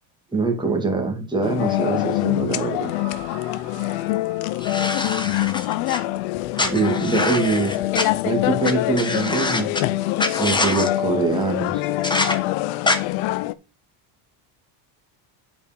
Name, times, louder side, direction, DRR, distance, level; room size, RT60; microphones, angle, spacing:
voice 1, 0.3-2.9 6.6-7.7 8.2-9.7 10.4-11.9, right 4 dB, 10° right, 2 dB, 2.6 m, -23 dB
sound 1, 1.4-13.5, left 16 dB, 75° left, 0.8 m, -25 dB
sound 2, 2.7-6.3 7.1-7.2, right 7 dB, 60° right, 3.8 m, -46 dB
sound 3, 4.6-6.0 6.6-8.0 8.6-8.7 9.0-9.8 10.2-10.9 12.0-12.3 12.8-13.0, left 2 dB, 10° left, 1.3 m, -24 dB
8.8 x 5.2 x 5.4 m, 0.32 s
cardioid pair, 135°, 49 cm